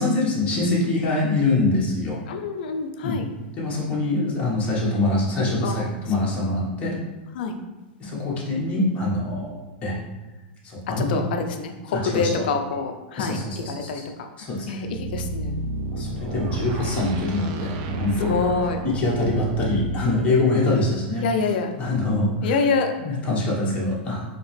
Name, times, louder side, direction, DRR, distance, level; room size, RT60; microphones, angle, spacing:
voice 1, 0.0-2.2 3.0-3.2 3.6-7.0 8.0-10.0 10.6-11.2 11.9-12.4 13.2-14.0 14.4-14.7 15.9-18.4 18.8-21.2 21.8-22.6 23.0-24.2, left 2 dB, 25° left, -5 dB, 1.1 m, -24 dB
voice 2, 2.3-3.3 5.6-6.0 7.4-7.6 11.0-14.0 14.7-15.6 18.2-18.8 21.2-21.7 22.4-22.9, left 4 dB, 65° left, 5 dB, 0.4 m, -26 dB
sound 1, 14.8-20.1, right 1 dB, 50° right, 0.4 m, -31 dB
4.0 x 2.8 x 3.2 m, 1.1 s
supercardioid pair, 145°, 5 cm